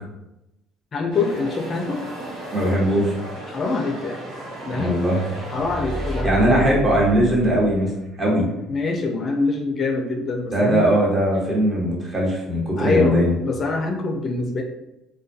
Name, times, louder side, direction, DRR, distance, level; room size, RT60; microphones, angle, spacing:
voice 1, 0.9-2.0 3.5-4.2 4.6-5.0 5.5-6.5 8.7-10.8 12.8-14.6, left 3 dB, 45° left, 2 dB, 0.4 m, -24 dB
sound 1, 1.1-6.2, right 1 dB, 80° right, 1.1 m, -35 dB
voice 2, 2.5-3.1 4.7-5.2 6.2-7.9 8.2-8.5 10.5-13.3, equal, 30° right, -4 dB, 1.0 m, -19 dB
sound 2, 5.4-8.2 8.5-8.6, left 1 dB, 55° right, 0.8 m, -31 dB
2.3 x 2.2 x 2.6 m, 0.91 s
supercardioid pair, 80°, 0 cm